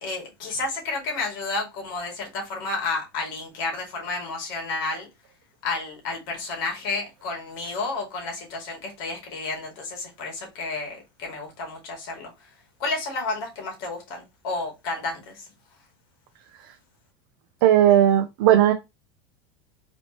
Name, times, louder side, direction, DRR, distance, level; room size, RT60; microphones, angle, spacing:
voice 1, 0.0-5.1 5.6-12.5 12.8-15.5, left 3 dB, 70° left, 2.2 m, -31 dB
voice 2, 17.6-18.7, right 11 dB, 70° right, 0.6 m, -16 dB
4.2 x 3.1 x 2.9 m
supercardioid pair, 120°, 12 cm